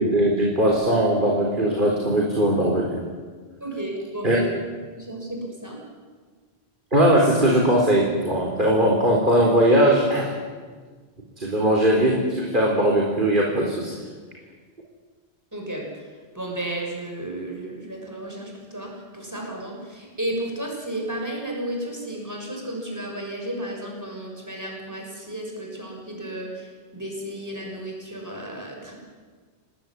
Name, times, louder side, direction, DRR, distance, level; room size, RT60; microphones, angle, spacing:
voice 1, 0.0-2.9 4.2-4.4 6.9-10.3 11.4-14.0, right 1 dB, 50° right, -2 dB, 4.3 m, -20 dB
voice 2, 3.6-4.4 4.9-5.8 15.5-16.1 16.3-28.9, right 1 dB, 15° right, 0 dB, 6.5 m, -33 dB
28.0 x 20.0 x 9.8 m, 1.5 s
omnidirectional pair, 1.1 m